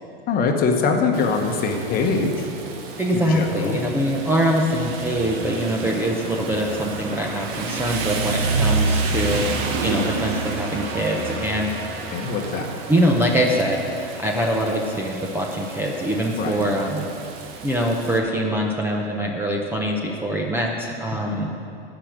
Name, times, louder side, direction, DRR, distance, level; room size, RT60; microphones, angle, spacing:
voice 1, 0.3-2.5 3.1-3.8 9.3-9.6 12.1-12.7 16.4-16.6 21.3-21.5, left 4 dB, 30° left, 3 dB, 1.2 m, -23 dB
Rain, 1.1-18.2, right 4 dB, 45° right, 1.3 m, -29 dB
voice 2, 3.0-11.7 12.9-17.1 17.6-21.5, equal, 5° right, -1 dB, 0.8 m, -23 dB
14.0 x 5.1 x 8.9 m, 2.6 s
supercardioid pair, 140°, 31 cm